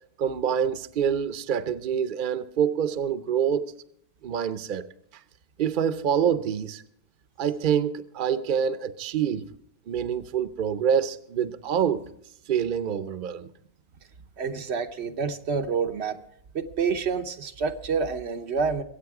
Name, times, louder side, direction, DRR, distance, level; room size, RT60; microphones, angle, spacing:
voice 1, 0.2-3.7 4.2-4.9 5.6-6.8 7.4-9.5 9.9-12.1 12.5-13.5, right 8 dB, 55° right, 0.8 m, -26 dB
voice 2, 14.4-16.2 16.5-18.8, right 5 dB, 90° right, 1.2 m, -28 dB
22.5 x 8.5 x 4.7 m
omnidirectional pair, 1.1 m